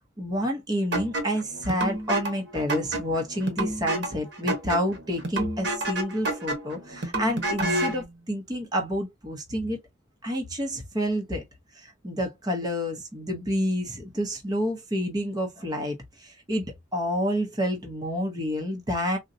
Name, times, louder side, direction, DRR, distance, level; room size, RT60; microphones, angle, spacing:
voice 1, 0.2-9.8 10.2-11.4 11.7-16.6 16.9-19.2, equal, 20° right, 0.7 m, -29 dB
sound 1, 0.9-8.1, right 1 dB, 70° right, 1.1 m, -30 dB
3.8 x 2.2 x 2.6 m
head